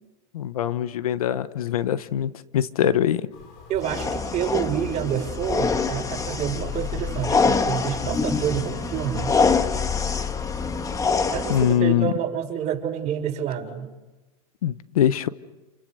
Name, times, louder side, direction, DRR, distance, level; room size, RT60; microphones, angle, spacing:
voice 1, 0.3-3.2 11.5-12.1 14.6-15.3, left 10 dB, 90° left, 14 dB, 1.2 m, -23 dB
sound 1, 3.3-10.8, left 5 dB, 65° left, 5.9 m, -42 dB
voice 2, 3.7-9.4 11.3-13.9, right 9 dB, 40° right, 2 dB, 6.1 m, -28 dB
sound 2, 3.8-11.8, left 5 dB, 20° left, 1.6 m, -25 dB
29.0 x 29.0 x 6.8 m, 1.1 s
hypercardioid pair, 110°, 18 cm